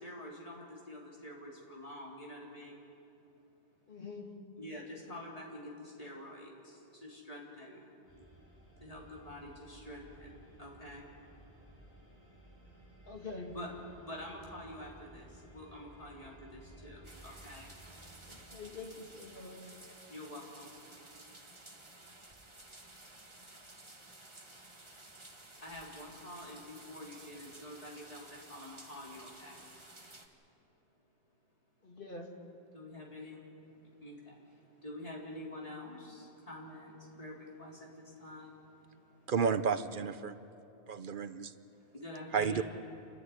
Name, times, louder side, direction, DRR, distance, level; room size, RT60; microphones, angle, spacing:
voice 1, 0.0-2.8 4.6-5.7 6.0-6.5 7.0-7.8 8.8-10.3 10.6-11.0 13.5-13.7 14.0-15.3 15.5-17.7 20.1-20.7 25.6-29.6 32.7-33.4 34.0-34.3 34.8-36.9 37.2-37.9 38.2-38.5 42.0-42.6, left 1 dB, 35° left, -3 dB, 4.0 m, -47 dB
voice 2, 3.9-4.3 13.1-13.5 18.3-19.7 31.8-32.3, left 3 dB, 55° left, 2 dB, 2.4 m, -45 dB
sound 1, 8.1-18.4, right 1 dB, 10° left, 5.6 m, -57 dB
sound 2, 17.0-30.3, right 2 dB, 25° right, 1.7 m, -54 dB
voice 3, 39.3-40.4 40.9-41.5 42.3-42.6, right 6 dB, 55° right, 12 dB, 0.8 m, -31 dB
29.0 x 12.5 x 9.7 m, 2.7 s
omnidirectional pair, 1.1 m